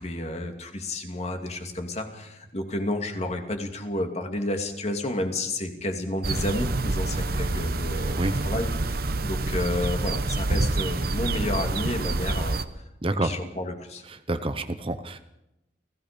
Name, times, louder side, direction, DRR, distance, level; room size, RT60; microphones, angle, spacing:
voice 1, 0.0-12.8 13.2-14.0, left 1 dB, 35° left, 4 dB, 2.6 m, -31 dB
sound 1, 6.2-12.6, right 2 dB, 55° right, 1.0 m, -27 dB
voice 2, 13.0-13.3 14.1-15.2, right 2 dB, 30° right, 9 dB, 0.9 m, -28 dB
29.5 x 17.0 x 5.3 m, 0.90 s
head